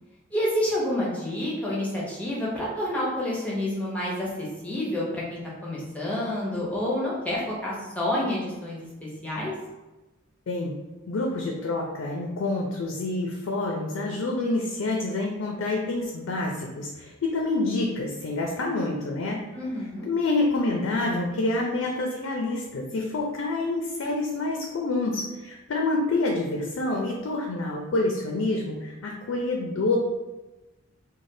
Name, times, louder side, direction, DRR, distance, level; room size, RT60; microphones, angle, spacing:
voice 1, 0.3-9.5 19.5-20.1, left 1 dB, 5° left, -6 dB, 0.6 m, -29 dB
voice 2, 10.5-10.8 11.1-19.4 20.1-30.0, left 2 dB, 75° left, 0 dB, 0.4 m, -27 dB
3.2 x 2.2 x 2.6 m, 1.1 s
head